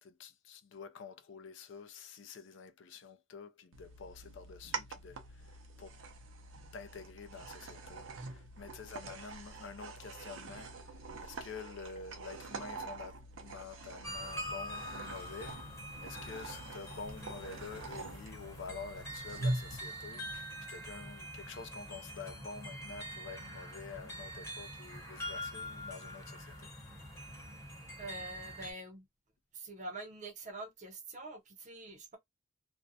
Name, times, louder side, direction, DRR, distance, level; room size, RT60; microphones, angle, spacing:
voice 1, 0.0-6.0 6.7-15.7 16.0-26.7, left 5 dB, 70° left, 0.4 m, -48 dB
sound 1, 3.7-19.8, right 2 dB, 85° right, 0.6 m, -44 dB
sound 2, 14.0-28.7, equal, 15° left, 0.8 m, -45 dB
voice 2, 28.0-29.1 29.5-32.2, right 2 dB, 40° right, 0.5 m, -45 dB
2.5 x 2.1 x 2.6 m
head